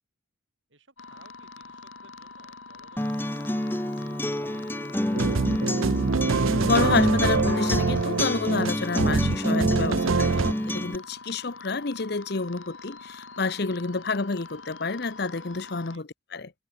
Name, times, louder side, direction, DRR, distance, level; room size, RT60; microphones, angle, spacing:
voice 1, 0.7-5.7 15.9-16.0, right 3 dB, 70° right, 6.9 m, -57 dB
sound 1, 1.0-16.0, left 4 dB, 80° left, 4.2 m, -43 dB
Acoustic guitar, 3.0-11.0, left 1 dB, 10° left, 0.7 m, -28 dB
sound 2, 5.1-10.5, right 4 dB, 90° right, 0.7 m, -25 dB
voice 2, 6.6-16.5, left 4 dB, 55° left, 0.9 m, -29 dB
head